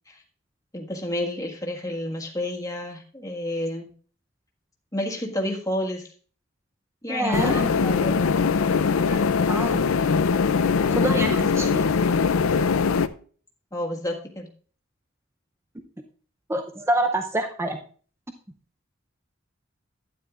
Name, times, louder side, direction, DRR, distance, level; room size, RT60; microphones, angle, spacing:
voice 1, 0.7-3.9 4.9-6.1 7.0-8.3 13.7-14.5, left 1 dB, 15° left, 1 dB, 1.7 m, -30 dB
voice 2, 7.1-7.7 9.1-9.2 9.5-9.9 10.9-11.9 16.5-17.8, right 1 dB, 15° right, 4 dB, 0.6 m, -27 dB
sound 1, 7.3-13.1, left 5 dB, 90° left, 0.5 m, -21 dB
12.0 x 9.5 x 2.5 m, 0.42 s
head